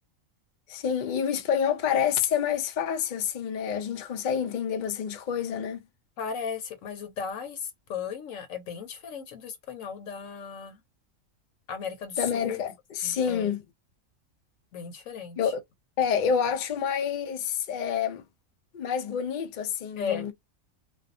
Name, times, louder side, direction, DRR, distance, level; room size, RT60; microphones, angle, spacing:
voice 1, 0.7-5.8 12.2-13.6 15.4-15.6 16.0-18.2 18.7-20.3, left 7 dB, 65° left, 0.4 m, -28 dB
voice 2, 6.2-10.8 11.7-12.6 13.0-13.5 14.7-15.5 20.0-20.3, left 7 dB, 80° left, 1.1 m, -36 dB
2.5 x 2.3 x 2.5 m
omnidirectional pair, 1.4 m